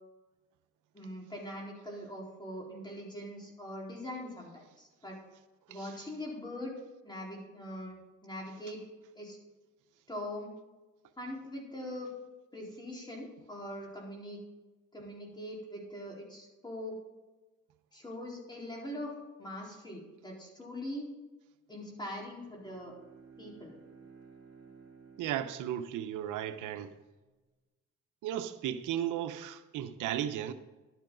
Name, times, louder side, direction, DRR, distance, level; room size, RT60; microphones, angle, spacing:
voice 1, 0.9-5.2 5.7-6.8 7.0-8.8 9.1-9.4 10.1-10.5 11.2-12.1 12.5-14.4 14.9-17.0 17.9-21.1 21.7-22.9 23.4-23.7, left 1 dB, 15° left, 4.2 m, -42 dB
Bowed string instrument, 22.3-26.9, right 5 dB, 55° right, 4.2 m, -56 dB
voice 2, 25.2-26.9 28.2-30.5, right 11 dB, 90° right, 0.9 m, -35 dB
11.5 x 10.5 x 4.0 m
cardioid pair, 90°, 30 cm